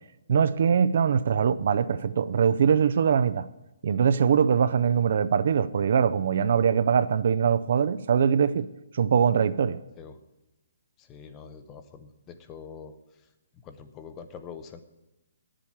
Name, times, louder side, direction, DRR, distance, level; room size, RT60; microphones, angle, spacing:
voice 1, 0.3-3.5 3.8-8.7 8.9-9.8, right 7 dB, 55° right, 0.5 m, -22 dB
voice 2, 11.0-12.9 13.6-14.8, left 6 dB, 15° left, 0.7 m, -44 dB
9.8 x 7.5 x 8.7 m
hypercardioid pair, 165°, 0 cm